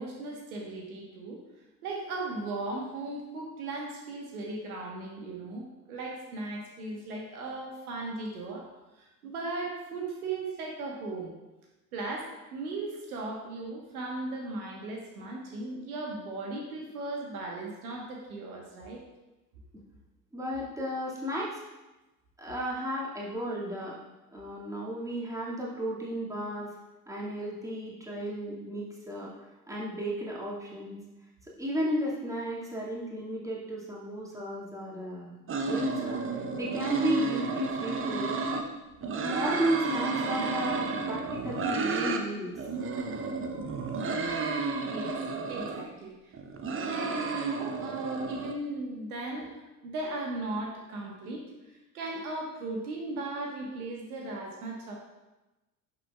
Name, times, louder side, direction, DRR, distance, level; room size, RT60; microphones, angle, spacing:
voice 1, 0.0-1.4 1.8-8.7 8.9-11.3 11.9-19.0 44.8-45.2 45.5-46.3 46.6-49.5 49.8-51.4 51.9-55.0, right 2 dB, 65° right, -1 dB, 1.5 m, -37 dB
voice 2, 20.3-21.6 22.4-24.0 24.3-26.7 27.1-29.3 29.7-31.0 31.6-35.3 35.7-38.3 39.1-42.5, equal, 5° right, -5 dB, 2.3 m, -34 dB
sound 1, 35.5-38.6 39.0-42.2 42.5-45.8 46.3-48.5, right 4 dB, 25° right, 0.9 m, -31 dB
11.5 x 6.6 x 2.4 m, 1.1 s
figure-of-eight pair, 65°, 47 cm